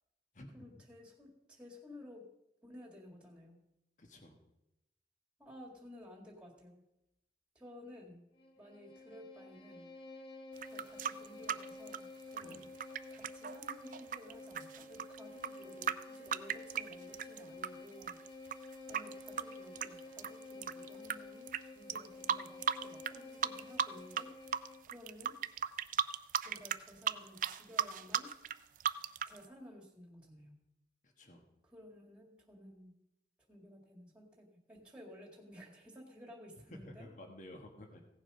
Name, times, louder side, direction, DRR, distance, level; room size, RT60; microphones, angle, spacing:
voice 1, 0.5-2.3 2.6-3.6 5.4-6.9 7.6-8.2 8.6-9.9 10.7-12.7 13.1-18.2 18.6-25.4 26.4-28.3 29.3-30.6 31.6-33.0 33.5-37.1, left 1 dB, 5° right, 1 dB, 1.9 m, -55 dB
voice 2, 4.0-4.4 12.4-12.7 31.0-31.4 36.7-38.0, left 1 dB, 45° left, 4 dB, 1.3 m, -52 dB
Bowed string instrument, 8.3-25.0, left 2 dB, 65° left, 1.5 m, -51 dB
sound 1, 10.6-17.7 18.0-21.1 21.5-21.6 21.9-23.2 23.4-24.2 24.5-29.4, right 8 dB, 45° right, 0.4 m, -36 dB
16.0 x 7.2 x 5.4 m, 0.89 s
head